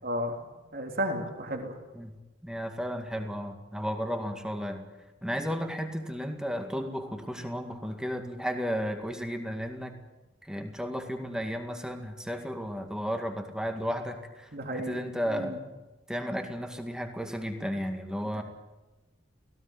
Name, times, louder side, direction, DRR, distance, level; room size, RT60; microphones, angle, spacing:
voice 1, 0.0-0.4 0.7-1.7 14.5-15.6 18.3-18.4, equal, 55° right, 2 dB, 3.2 m, -33 dB
voice 2, 1.9-4.8 5.2-9.9 10.4-15.6 16.1-18.4, equal, 5° right, 5 dB, 2.0 m, -34 dB
17.5 x 16.5 x 9.7 m, 1.1 s
head